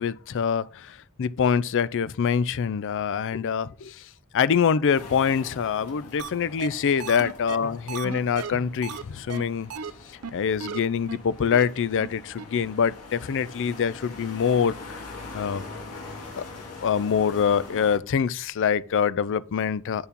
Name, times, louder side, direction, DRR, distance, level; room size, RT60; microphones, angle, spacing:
voice 1, 0.0-4.0 4.3-9.7 10.3-15.0 15.3-15.6 16.4-16.5 16.8-20.1, left 7 dB, 60° left, 0.4 m, -25 dB
sound 1, 4.9-18.0, left 3 dB, 80° left, 2.3 m, -43 dB
sound 2, 6.2-6.3 6.6-6.7 7.0-9.0 9.3-9.4 9.7-9.9 10.2-10.3 10.6-10.8 11.1-11.2 11.5-11.7 12.0-12.1 12.4-12.5, right 6 dB, 80° right, 0.7 m, -35 dB
8.6 x 4.6 x 5.3 m
head